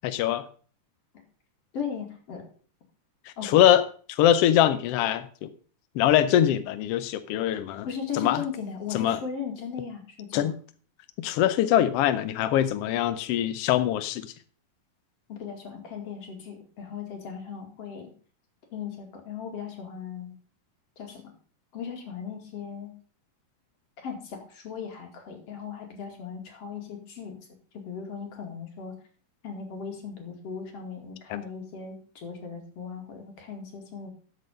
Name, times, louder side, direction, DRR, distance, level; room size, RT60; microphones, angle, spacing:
voice 1, 0.0-0.4 3.4-5.5 5.9-7.9 8.1-8.4 8.9-9.2 10.3-10.6 11.2-14.3 31.3-31.4, left 11 dB, 85° left, 12 dB, 1.3 m, -23 dB
voice 2, 1.7-2.4 3.4-3.7 7.9-10.5 15.3-18.1 18.7-20.3 21.0-21.2 21.7-22.9 24.0-27.4 27.7-28.9 29.4-34.1, left 6 dB, 50° left, 3 dB, 3.2 m, -37 dB
13.0 x 6.4 x 5.3 m, 0.43 s
omnidirectional pair, 3.7 m